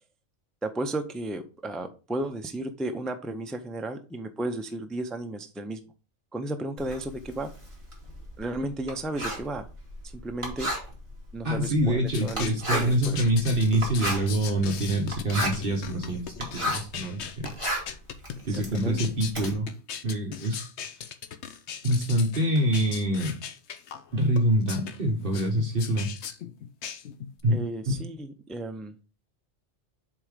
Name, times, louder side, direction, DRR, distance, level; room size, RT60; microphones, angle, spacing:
voice 1, 0.6-5.8 6.3-7.5 8.4-9.7 10.1-10.7 11.3-13.2 18.5-19.0 27.5-28.9, right 1 dB, ahead, 7 dB, 0.4 m, -34 dB
Writing, 6.8-17.0 17.3-19.5, equal, 25° right, 2.9 m, -34 dB
voice 2, 11.4-17.5 18.4-19.7 20.0-20.7 21.0-21.1 21.8-23.4 24.1-26.1 27.4-27.6 27.9-28.0, right 1 dB, 50° right, 1 dB, 1.4 m, -25 dB
sound 1, 12.1-27.4, left 8 dB, 75° left, 1.0 m, -39 dB
7.6 x 3.6 x 5.1 m, 0.34 s
omnidirectional pair, 1.2 m